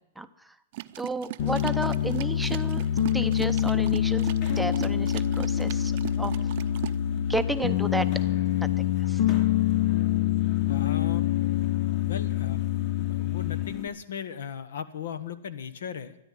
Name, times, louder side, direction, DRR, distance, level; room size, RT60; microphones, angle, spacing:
sound 1, 0.7-7.0, right 18 dB, 50° right, 0.6 m, -39 dB
voice 1, 1.0-2.8 3.1-4.3 4.6-5.9 6.2-6.3 7.3-8.1 8.6-8.7 9.1-9.2, right 2 dB, ahead, 8 dB, 0.6 m, -31 dB
Piano, 1.4-13.9, left 11 dB, 55° left, 0.8 m, -26 dB
sound 2, 1.4-13.9, left 4 dB, 40° left, 2.2 m, -47 dB
voice 2, 10.7-11.3 12.0-12.6 13.0-16.2, left 8 dB, 80° left, 14 dB, 1.2 m, -37 dB
13.0 x 10.5 x 9.5 m, 0.89 s
hypercardioid pair, 150°, 0 cm